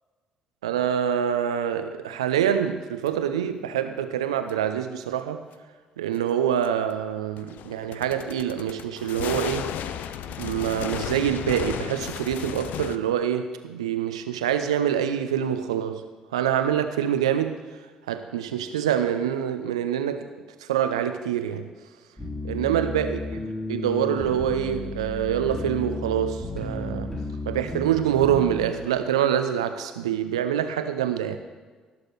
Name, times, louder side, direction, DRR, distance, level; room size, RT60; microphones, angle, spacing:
voice 1, 0.6-5.4 6.0-9.7 10.4-16.0 16.3-17.6 18.1-20.3 20.6-21.7 22.4-23.2 23.7-27.1 27.5-31.4, right 9 dB, 85° right, 9 dB, 0.6 m, -25 dB
sound 1, 3.1-3.2 4.5-4.6 6.6-6.7 7.4-13.0, left 10 dB, 65° left, 0.5 m, -34 dB
sound 2, 22.2-28.7, left 2 dB, 15° left, 4.1 m, -33 dB
17.5 x 6.6 x 4.1 m, 1.4 s
hypercardioid pair, 45°, 3 cm